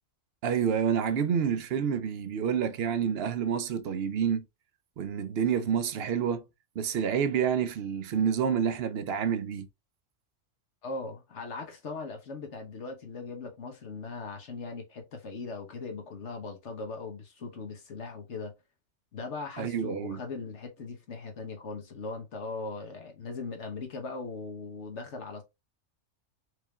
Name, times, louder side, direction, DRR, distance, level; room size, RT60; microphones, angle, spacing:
voice 1, 0.4-4.4 5.0-6.4 6.8-9.7 19.6-20.2, right 7 dB, 65° right, 0.7 m, -28 dB
voice 2, 10.8-18.5 19.1-25.4, left 3 dB, 65° left, 1.3 m, -39 dB
4.7 x 3.3 x 2.3 m
omnidirectional pair, 1.3 m